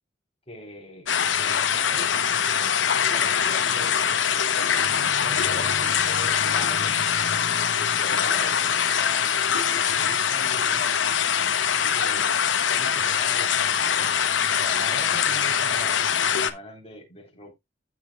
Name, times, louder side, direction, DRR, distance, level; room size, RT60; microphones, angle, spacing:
voice 1, 0.5-1.1 1.4-4.6 5.1-7.1 7.8-9.5 10.0-11.0 11.9-17.5, left 1 dB, 35° left, 3.5 m, -42 dB
sound 1, 1.1-16.5, left 8 dB, 80° left, 0.9 m, -23 dB
15.0 x 5.1 x 2.3 m
head